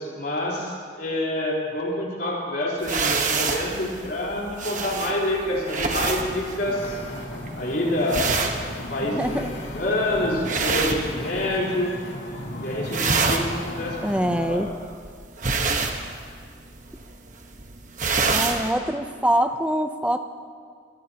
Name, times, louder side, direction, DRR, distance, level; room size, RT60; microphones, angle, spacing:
voice 1, 0.0-7.0 7.5-8.3 8.8-9.4 9.7-11.9 12.6-14.7, left 1 dB, 55° left, -4 dB, 4.2 m, -27 dB
sound 1, 2.8-11.8 12.1-12.5 12.7-18.7, right 4 dB, 40° right, 1.2 m, -27 dB
Wind / Ocean, 6.6-14.5, left 1 dB, 75° left, 2.3 m, -36 dB
voice 2, 9.1-9.5 14.0-14.7 18.3-20.2, right 1 dB, 5° right, 7 dB, 0.6 m, -24 dB
26.0 x 18.5 x 3.0 m, 2.1 s
head